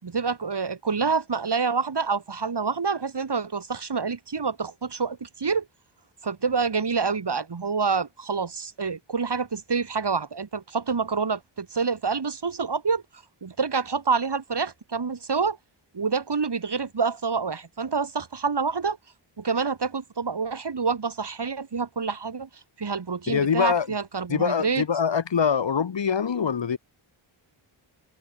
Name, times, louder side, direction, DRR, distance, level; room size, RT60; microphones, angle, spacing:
voice 1, 0.0-5.7 6.2-15.6 15.9-19.0 19.4-22.5 22.8-24.9, right 5 dB, 55° right, 7.8 m, -27 dB
voice 2, 23.3-23.9 24.3-26.8, left 7 dB, 60° left, 2.5 m, -24 dB
cardioid pair, 60°, 48 cm